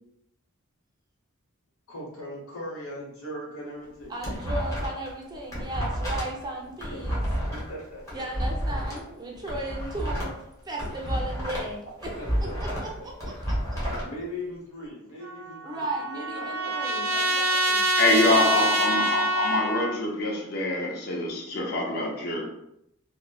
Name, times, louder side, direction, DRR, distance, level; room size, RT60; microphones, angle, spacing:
voice 1, 1.9-4.1 6.0-6.1 6.9-7.0 7.7-8.2 12.2-12.8 13.9-15.9 16.3-16.7 18.1-18.7, left 1 dB, 85° left, -4 dB, 1.0 m, -39 dB
sound 1, 3.8-5.1 5.4-9.0 9.4-11.7 12.0-14.0, equal, 15° left, 0.8 m, -30 dB
voice 2, 4.1-7.3 8.1-10.3 10.6-12.1 12.6-13.3 15.6-17.8 19.2-19.4, right 1 dB, 20° right, -1 dB, 0.4 m, -36 dB
Trumpet, 15.2-20.0, right 1 dB, 75° right, 0.5 m, -26 dB
voice 3, 18.0-22.4, left 2 dB, 50° left, -2 dB, 0.5 m, -25 dB
2.9 x 2.1 x 2.3 m, 0.79 s
head